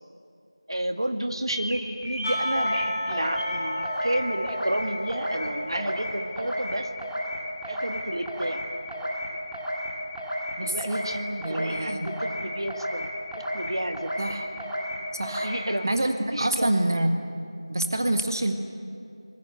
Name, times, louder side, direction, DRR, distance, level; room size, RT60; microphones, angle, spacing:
voice 1, 0.7-6.9 7.7-8.7 10.6-13.1 13.5-14.1 15.4-15.9 16.3-16.9, right 1 dB, 65° right, 6 dB, 2.0 m, -31 dB
sound 1, 1.5-1.8 2.0-2.8 3.1-3.6 3.8-4.2 4.5-4.8 5.1-5.4 5.7-6.1 6.4-6.7 7.0-7.3 7.6-8.0 8.2-8.6 8.9-9.2 9.5-9.9 10.1-10.5 10.8-11.1 11.4-11.8 12.0-12.4 12.7-13.0 13.3-13.7 13.9-14.3 14.6-14.9 15.2-15.5, equal, ahead, 2.0 m, -32 dB
Percussion / Church bell, 2.2-6.8, equal, 15° left, 4.7 m, -32 dB
voice 2, 10.6-11.0 11.4-12.1 14.2-14.5 15.1-15.5 15.8-17.1 17.7-18.5, right 1 dB, 40° right, 5 dB, 1.7 m, -26 dB
27.5 x 20.5 x 9.2 m, 2.6 s
figure-of-eight pair, 175°, 3 cm